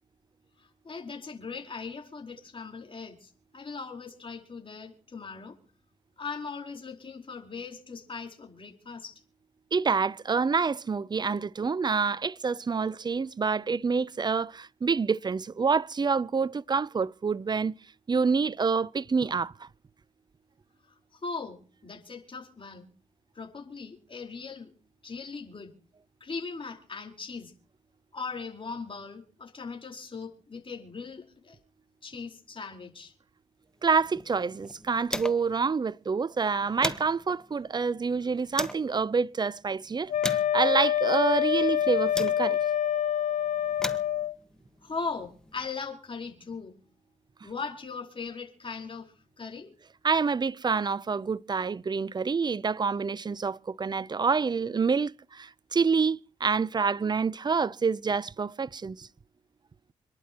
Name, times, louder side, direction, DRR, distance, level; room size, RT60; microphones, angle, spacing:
voice 1, 0.6-5.5 6.2-9.2 20.9-22.9 23.3-24.7 25.0-25.7 26.2-27.5 28.1-31.6 32.0-33.1 44.8-46.8 47.4-49.7, left 4 dB, 40° left, 4.6 m, -39 dB
voice 2, 9.7-17.7 18.1-19.7 33.8-42.6 50.0-59.1, right 5 dB, 30° right, 0.6 m, -27 dB
sound 1, 33.8-35.6 35.9-36.0 36.4-38.9 39.5-42.7 43.5-45.7, left 1 dB, 5° left, 1.5 m, -39 dB
Wind instrument woodwind instrument, 40.1-44.3, left 10 dB, 60° left, 0.7 m, -26 dB
27.0 x 11.5 x 3.0 m
supercardioid pair, 50°, 14 cm